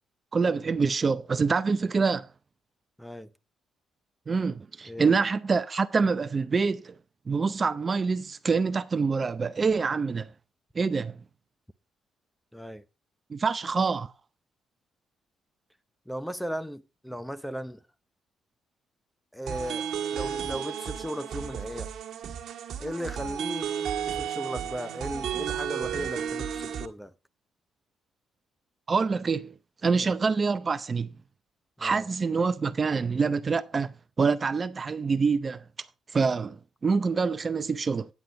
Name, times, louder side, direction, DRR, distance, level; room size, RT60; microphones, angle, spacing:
voice 1, 0.3-2.3 4.3-7.0 7.3-10.3 10.7-11.2 13.3-14.1 28.9-29.5 29.8-31.1 31.8-35.6 36.1-38.1, right 4 dB, 35° right, 0.6 m, -26 dB
voice 2, 3.0-3.3 4.9-5.1 12.5-12.8 16.1-17.8 19.3-19.8 20.1-21.9 22.8-23.7 24.1-27.1 30.0-30.1 31.8-32.0, equal, 5° left, 0.8 m, -36 dB
sound 1, 19.5-26.9, right 8 dB, 70° right, 1.5 m, -33 dB
9.4 x 9.0 x 4.0 m
cardioid pair, 90°, 0 cm